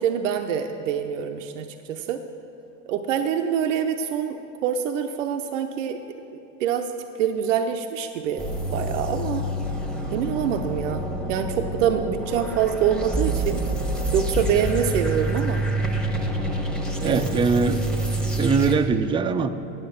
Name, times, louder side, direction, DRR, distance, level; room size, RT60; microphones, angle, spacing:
voice 1, 0.0-2.2 2.9-6.0 6.6-6.9 7.2-9.5 10.1-13.7 14.1-15.6 17.0-17.5, right 8 dB, 90° right, 5 dB, 0.6 m, -25 dB
sound 1, 8.4-18.8, right 1 dB, ahead, 1.1 m, -27 dB
voice 2, 17.0-17.8 18.4-19.5, right 4 dB, 15° right, 8 dB, 0.4 m, -21 dB
9.3 x 7.8 x 7.0 m, 2.9 s
supercardioid pair, 100°, 37 cm